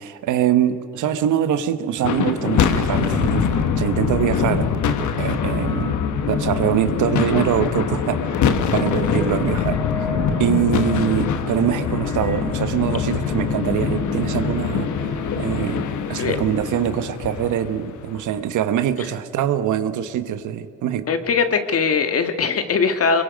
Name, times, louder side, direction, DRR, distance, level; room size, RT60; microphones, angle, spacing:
voice 1, 0.0-3.5 3.8-4.7 5.0-5.9 6.3-8.4 8.7-15.1 15.4-21.1, right 10 dB, 80° right, 11 dB, 1.2 m, -23 dB
sound 1, 2.0-18.4, left 6 dB, 75° left, 1.3 m, -23 dB
sound 2, 2.0-15.9, left 1 dB, 10° left, 1.5 m, -38 dB
voice 2, 21.1-23.2, left 5 dB, 50° left, 8 dB, 1.7 m, -20 dB
24.5 x 23.0 x 5.3 m, 2.3 s
cardioid pair, 90°, 30 cm